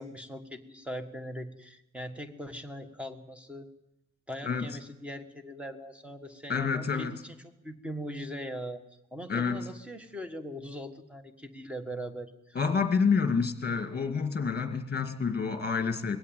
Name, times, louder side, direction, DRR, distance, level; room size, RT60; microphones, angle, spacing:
voice 1, 0.0-3.7 4.3-7.4 7.6-8.8 9.1-12.6, equal, 5° right, 8 dB, 1.5 m, -40 dB
voice 2, 6.5-7.1 9.3-9.6 12.6-16.2, left 5 dB, 35° left, 7 dB, 2.1 m, -28 dB
21.0 x 16.0 x 9.3 m, 0.89 s
wide cardioid pair, 165°, 31 cm